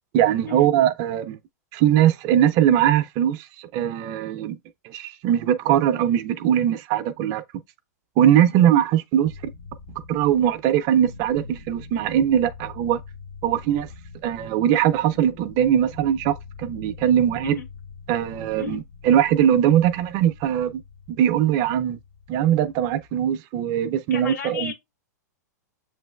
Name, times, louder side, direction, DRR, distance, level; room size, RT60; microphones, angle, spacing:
voice 1, 0.1-1.4 1.7-4.6 4.8-7.4 8.2-9.3 10.1-13.0 13.4-13.9 14.2-17.6 18.1-20.8 21.1-22.0 22.3-24.7, right 10 dB, 40° right, 0.5 m, -21 dB
sound 1, 9.2-23.3, left 5 dB, 60° left, 1.0 m, -44 dB
voice 2, 24.1-24.7, left 6 dB, 80° left, 1.6 m, -33 dB
7.2 x 3.2 x 2.2 m
hypercardioid pair, 105°, 9 cm